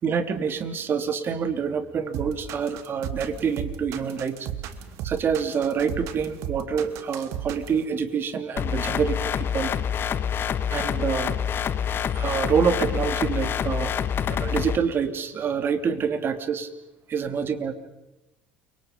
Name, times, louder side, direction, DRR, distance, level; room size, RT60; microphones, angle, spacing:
voice 1, 0.0-4.5 5.0-9.7 10.7-11.4 12.1-13.9 14.3-16.7 17.1-17.7, right 6 dB, 40° right, 9 dB, 3.0 m, -26 dB
sound 1, 2.1-7.8, right 11 dB, 65° right, 2.4 m, -34 dB
sound 2, 8.6-14.8, left 8 dB, 45° left, 1.5 m, -26 dB
30.0 x 24.5 x 5.3 m, 0.99 s
hypercardioid pair, 75°, 5 cm